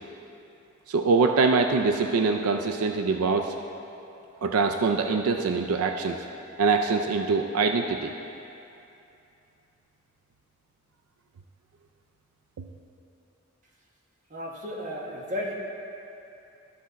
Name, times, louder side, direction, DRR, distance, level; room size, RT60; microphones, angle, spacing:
voice 1, 0.9-3.5 4.4-6.2 6.6-8.1 12.6-12.7, right 4 dB, 85° right, 5 dB, 0.4 m, -24 dB
voice 2, 14.3-15.5, left 1 dB, 35° right, -2 dB, 1.2 m, -33 dB
12.5 x 6.2 x 4.0 m, 2.8 s
head